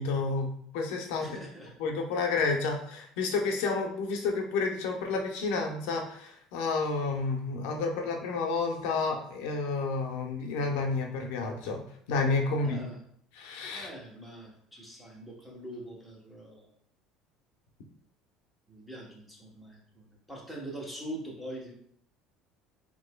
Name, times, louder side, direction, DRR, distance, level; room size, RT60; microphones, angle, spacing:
voice 1, 0.0-1.4 1.8-12.8 13.4-13.9, left 4 dB, 80° left, 2 dB, 0.8 m, -30 dB
voice 2, 1.2-1.8 2.2-2.4 12.5-13.0 13.7-16.7 18.7-21.7, right 1 dB, ahead, -3 dB, 0.9 m, -43 dB
6.4 x 3.0 x 2.2 m, 0.65 s
cardioid pair, 175°, 0 cm